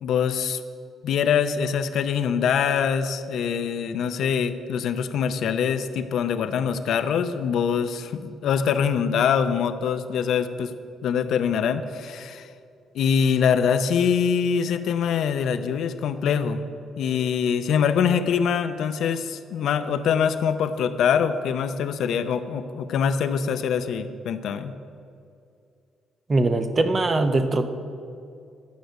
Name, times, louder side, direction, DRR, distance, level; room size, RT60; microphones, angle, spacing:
voice 1, 0.0-0.6 1.0-10.7 11.0-12.5 12.9-16.6 17.0-24.7, left 7 dB, 75° left, 9 dB, 0.6 m, -24 dB
voice 2, 26.3-27.7, right 2 dB, 35° right, 8 dB, 0.8 m, -21 dB
11.5 x 5.2 x 7.9 m, 2.4 s
cardioid pair, 90°, 0 cm